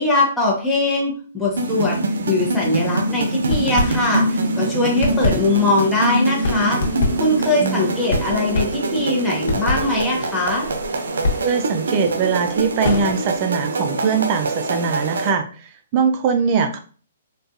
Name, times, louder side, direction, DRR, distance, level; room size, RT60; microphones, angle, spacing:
voice 1, 0.0-2.0 2.3-6.8 7.2-10.7, left 2 dB, 5° left, -5 dB, 0.8 m, -21 dB
sound 1, 1.5-15.3, right 2 dB, 85° right, 0.6 m, -24 dB
sound 2, 3.5-4.4 4.7-13.4, left 2 dB, 70° left, 0.9 m, -26 dB
voice 2, 7.6-7.9 11.4-16.8, right 5 dB, 35° right, 7 dB, 0.3 m, -21 dB
3.7 x 2.3 x 2.6 m, 0.41 s
hypercardioid pair, 160°, 0 cm